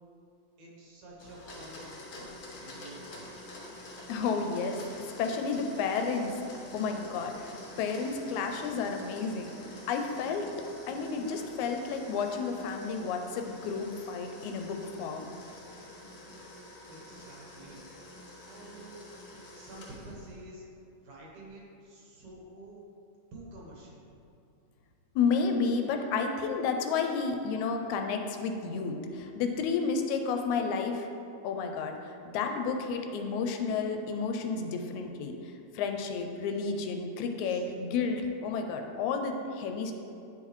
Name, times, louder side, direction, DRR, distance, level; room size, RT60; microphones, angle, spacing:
voice 1, 0.6-3.3 6.7-6.8 8.5-8.6 16.9-17.8 18.5-19.0 19.6-20.6 21.0-22.8 23.3-24.2 27.7-27.8 29.1-29.4 37.4-37.7, right 1 dB, 70° right, -4 dB, 2.4 m, -49 dB
Domestic sounds home sounds, 1.2-20.4, left 1 dB, 60° left, 1.4 m, -48 dB
voice 2, 4.1-6.3 6.7-9.5 9.9-10.5 10.9-15.3 25.2-31.1 31.4-35.3 35.7-39.9, left 5 dB, 80° left, 4 dB, 1.9 m, -31 dB
10.0 x 3.8 x 3.1 m, 2.6 s
omnidirectional pair, 3.4 m